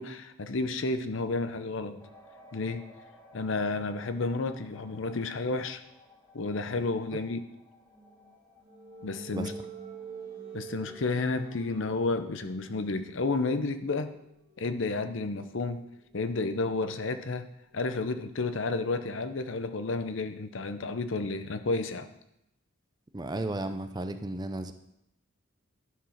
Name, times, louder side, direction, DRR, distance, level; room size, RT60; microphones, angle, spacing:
voice 1, 0.0-2.0 2.5-2.8 3.3-5.8 6.3-7.5 9.0-9.5 10.5-14.1 14.6-15.8 16.1-17.5 17.7-22.1, left 3 dB, 65° left, 10 dB, 0.7 m, -31 dB
sound 1, 2.0-11.1, left 2 dB, 10° left, 1.8 m, -57 dB
sound 2, 7.8-19.4, right 5 dB, 40° right, 2.4 m, -49 dB
voice 2, 23.1-24.7, right 1 dB, 20° right, 9 dB, 0.5 m, -34 dB
11.5 x 4.9 x 5.8 m, 0.83 s
head